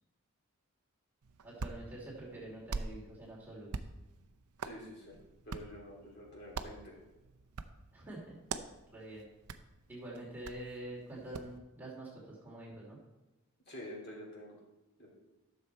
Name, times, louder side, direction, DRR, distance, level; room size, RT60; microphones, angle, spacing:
Hands, 1.2-11.6, right 4 dB, 85° right, 0.6 m, -46 dB
voice 1, 1.4-3.8 7.9-8.4 8.9-9.3 9.9-13.0, right 1 dB, 10° right, -6 dB, 2.7 m, -46 dB
voice 2, 4.6-5.2 5.4-7.0 13.7-14.6 15.0-15.1, equal, 45° left, -4 dB, 3.2 m, -48 dB
13.0 x 6.8 x 4.3 m, 1.1 s
head